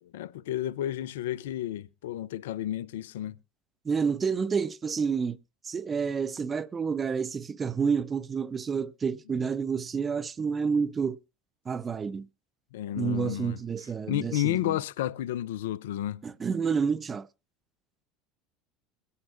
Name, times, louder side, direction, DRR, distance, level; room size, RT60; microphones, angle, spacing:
voice 1, 0.0-3.4 12.7-13.6 14.1-16.2, left 13 dB, 80° left, 0.5 m, -31 dB
voice 2, 3.8-5.4 5.6-11.2 11.7-12.3 13.0-14.8 16.2-17.3, right 6 dB, 30° right, 0.6 m, -29 dB
22.5 x 9.6 x 2.5 m
hypercardioid pair, 80°, 0 cm